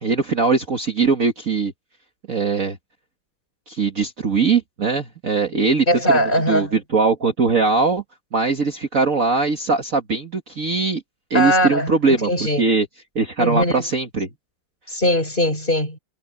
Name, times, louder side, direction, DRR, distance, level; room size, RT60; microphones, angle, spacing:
voice 1, 0.0-1.7 2.3-2.8 3.7-5.9 6.5-8.0 8.3-11.0 11.3-12.3 12.6-12.9 13.2-14.3, right 4 dB, 40° right, 2.0 m, -20 dB
voice 2, 5.9-6.8 11.3-12.7 13.4-13.8 14.9-16.0, equal, 25° left, 5.7 m, -20 dB
omnidirectional pair, 2.2 m